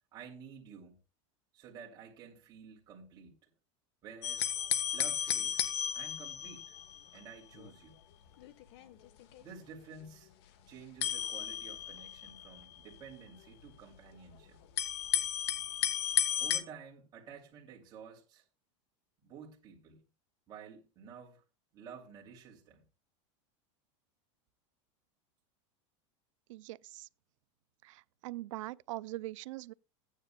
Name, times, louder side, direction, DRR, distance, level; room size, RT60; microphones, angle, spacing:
voice 1, 0.1-1.0 1.5-3.4 4.0-4.5 4.9-5.6 5.9-6.8 7.1-8.0 9.4-10.3 10.7-14.6 16.4-18.4 19.2-20.0 20.5-21.4 21.7-22.8, right 6 dB, 25° right, 2.7 m, -51 dB
sound 1, 4.2-7.2 7.5-7.7 8.4-9.4 11.0-12.9 13.7-13.8 14.8-16.6, left 11 dB, 55° left, 1.1 m, -34 dB
voice 2, 26.5-27.1 27.8-29.7, right 18 dB, 80° right, 0.4 m, -42 dB
15.5 x 9.6 x 2.2 m
supercardioid pair, 165°, 16 cm